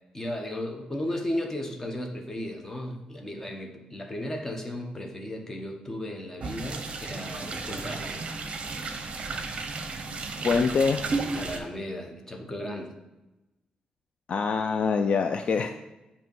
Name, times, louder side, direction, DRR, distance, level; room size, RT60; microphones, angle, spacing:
voice 1, 0.1-8.2 11.3-12.9, left 1 dB, 15° left, 3 dB, 0.9 m, -35 dB
sound 1, 6.4-11.6, right 3 dB, 45° right, 0.7 m, -33 dB
voice 2, 10.4-11.0 14.3-15.7, left 5 dB, 50° left, 6 dB, 0.3 m, -24 dB
7.9 x 2.8 x 5.3 m, 1.0 s
wide cardioid pair, 140°, 3 cm